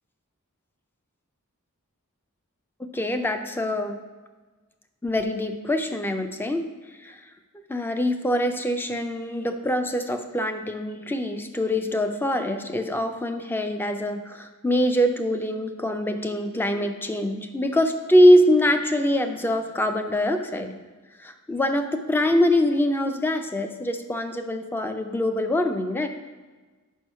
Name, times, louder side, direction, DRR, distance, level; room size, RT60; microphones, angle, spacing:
voice 1, 2.9-4.0 5.0-6.7 7.0-7.2 7.7-20.8 21.2-26.1, left 1 dB, 10° left, 7 dB, 0.4 m, -23 dB
5.5 x 4.6 x 5.5 m, 1.3 s
head